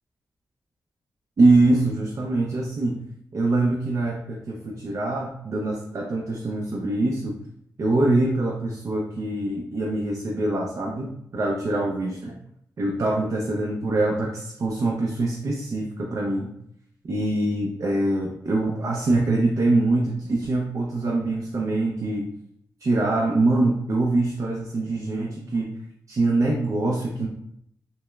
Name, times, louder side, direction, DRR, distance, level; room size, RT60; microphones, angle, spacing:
voice 1, 1.4-3.0 3.3-7.4 7.8-12.4 12.8-16.5 17.1-22.3 22.8-25.7 26.1-27.3, right 2 dB, 55° right, -1 dB, 0.5 m, -24 dB
5.2 x 2.0 x 2.3 m, 0.74 s
cardioid pair, 85°, 6 cm